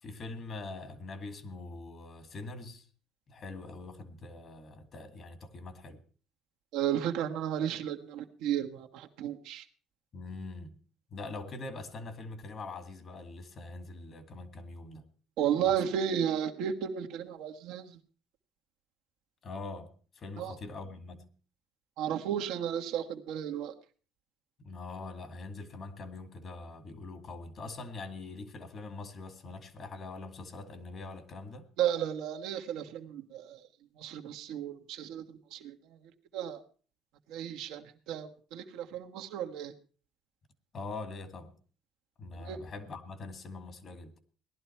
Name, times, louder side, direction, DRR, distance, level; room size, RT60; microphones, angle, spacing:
voice 1, 0.0-2.9 3.3-6.0 10.1-10.8 11.1-15.0 15.6-15.7 19.4-21.3 24.6-31.7 40.7-41.5 42.2-44.1, left 3 dB, 45° left, 2.3 m, -43 dB
voice 2, 6.7-9.6 15.4-17.9 20.4-20.5 22.0-23.7 31.8-33.6 34.0-35.2 35.5-35.8 36.3-36.6 37.3-39.7 42.4-42.6, right 9 dB, 80° right, 1.6 m, -33 dB
18.0 x 11.5 x 4.5 m
cardioid pair, 105°, 0 cm